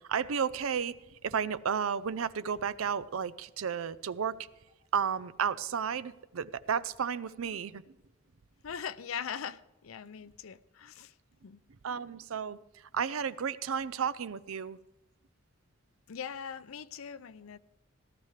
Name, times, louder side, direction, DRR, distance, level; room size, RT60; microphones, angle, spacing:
voice 1, 0.1-4.4 4.9-7.8 11.8-12.6 12.9-14.8, right 7 dB, 90° right, 0.5 m, -32 dB
voice 2, 8.6-11.1 11.4-11.6 16.1-17.6, left 7 dB, 90° left, 0.5 m, -41 dB
18.0 x 12.5 x 3.3 m
head